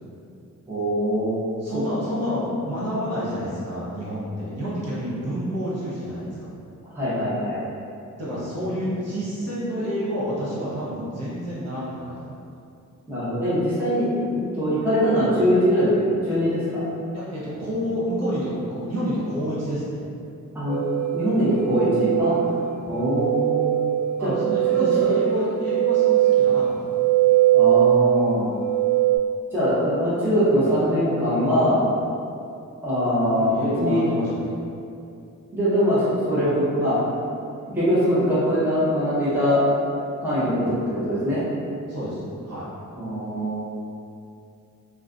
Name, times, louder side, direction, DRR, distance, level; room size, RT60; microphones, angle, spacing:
voice 1, 0.7-1.4 6.9-7.6 13.1-14.1 14.3-16.6 20.5-20.8 21.1-22.3 22.8-23.7 24.2-24.3 24.7-25.1 27.5-28.5 29.5-31.8 32.8-34.1 35.5-37.0 37.7-39.6 40.2-41.4 43.0-43.6, equal, 5° right, -12 dB, 0.6 m, -22 dB
voice 2, 1.6-6.5 8.2-12.4 17.1-20.0 22.4-22.6 24.2-26.8 33.4-34.6 41.9-42.7, equal, 55° right, -9 dB, 0.8 m, -29 dB
sound 1, 20.7-29.2, right 12 dB, 80° right, 1.0 m, -21 dB
2.3 x 2.1 x 2.4 m, 2.6 s
wide cardioid pair, 135°, 31 cm